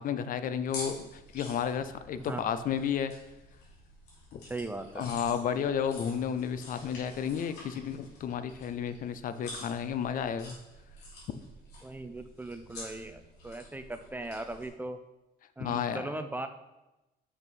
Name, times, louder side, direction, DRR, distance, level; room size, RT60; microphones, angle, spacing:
voice 1, 0.0-3.1 4.3-4.4 5.0-10.6 15.6-16.1, left 8 dB, 55° left, 12 dB, 0.5 m, -32 dB
sound 1, 0.6-14.7, left 1 dB, 85° left, 2.9 m, -48 dB
voice 2, 4.4-5.1 11.8-15.0 15.6-16.5, right 2 dB, 10° right, 8 dB, 0.4 m, -38 dB
6.0 x 5.5 x 5.4 m, 1.0 s
cardioid pair, 110°, 17 cm